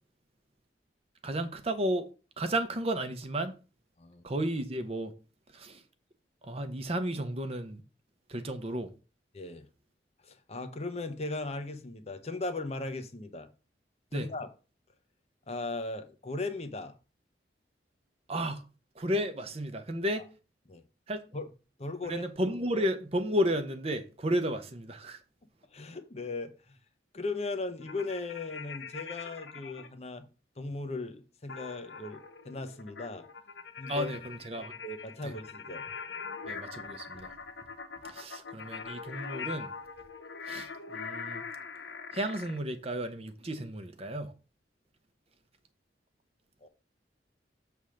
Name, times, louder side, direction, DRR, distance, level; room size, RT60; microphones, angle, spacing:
voice 1, 1.2-2.1 2.4-3.5 4.2-5.1 5.5-5.8 6.4-7.8 8.3-8.9 14.1-14.3 18.3-18.6 19.0-20.3 21.1-21.2 22.0-25.2 33.9-34.7 35.2-35.3 36.5-37.3 38.0-39.7 40.5-41.4 42.1-44.3, equal, 35° right, 0.8 m, -33 dB
voice 2, 9.3-9.7 10.3-13.5 14.1-14.5 15.5-16.9 20.7-20.8 21.3-21.5 21.8-22.2 25.7-26.8 27.1-30.3 30.6-33.3 33.8-34.1 34.8-35.9 46.6-46.7, left 3 dB, 35° left, 0.8 m, -37 dB
sound 1, 27.8-29.9 31.5-42.6, left 5 dB, 75° left, 0.9 m, -42 dB
7.1 x 3.5 x 6.3 m
head